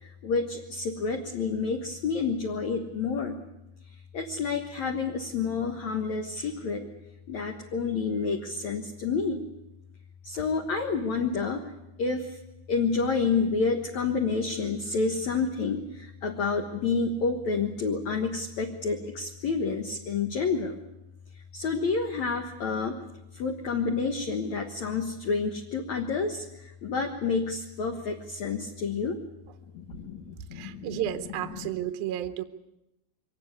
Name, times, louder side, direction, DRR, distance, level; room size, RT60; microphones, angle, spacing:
voice 1, 0.0-3.4 4.1-6.9 7.3-9.4 10.2-11.6 12.0-12.4 12.7-20.8 21.5-23.0 23.3-29.2 29.7-31.0 31.6-31.7, left 4 dB, 65° left, 3 dB, 1.8 m, -29 dB
voice 2, 30.5-32.4, right 11 dB, 75° right, 9 dB, 2.4 m, -32 dB
24.0 x 18.0 x 9.7 m, 0.90 s
omnidirectional pair, 5.3 m